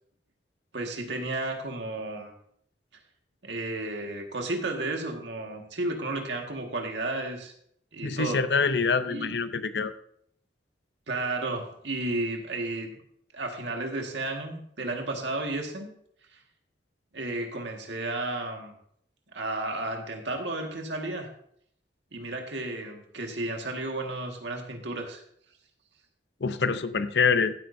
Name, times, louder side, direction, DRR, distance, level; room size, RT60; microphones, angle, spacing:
voice 1, 0.7-2.3 3.4-7.5 7.9-8.4 9.1-9.3 11.1-12.9 13.3-15.9 16.3-16.4 17.1-18.7 19.3-21.3 22.1-25.2, right 2 dB, 85° right, 3 dB, 1.8 m, -33 dB
voice 2, 8.0-9.9 26.4-27.5, left 5 dB, 70° left, 12 dB, 0.7 m, -25 dB
15.0 x 8.6 x 2.7 m, 0.67 s
head